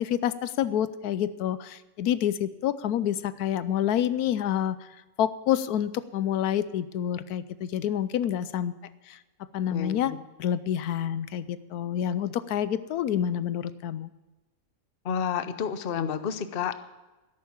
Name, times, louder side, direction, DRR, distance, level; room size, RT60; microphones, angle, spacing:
voice 1, 0.0-4.9 5.2-8.7 9.1-9.2 9.5-10.1 10.4-14.1, left 10 dB, 85° left, 15 dB, 1.2 m, -28 dB
voice 2, 9.7-10.2 15.0-16.9, left 7 dB, 45° left, 11 dB, 0.8 m, -30 dB
12.5 x 11.0 x 7.1 m, 1.1 s
omnidirectional pair, 1.6 m